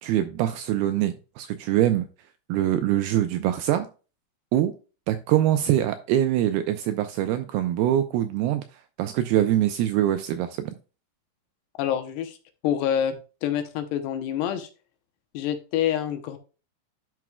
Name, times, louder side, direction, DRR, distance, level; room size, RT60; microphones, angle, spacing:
voice 1, 0.0-2.1 2.5-3.9 4.5-4.7 5.1-8.6 9.0-10.7, right 12 dB, 85° right, 9 dB, 2.3 m, -23 dB
voice 2, 11.8-12.4 12.6-14.7 15.3-16.4, left 10 dB, 80° left, 9 dB, 2.8 m, -27 dB
10.5 x 6.1 x 2.2 m, 0.34 s
omnidirectional pair, 5.0 m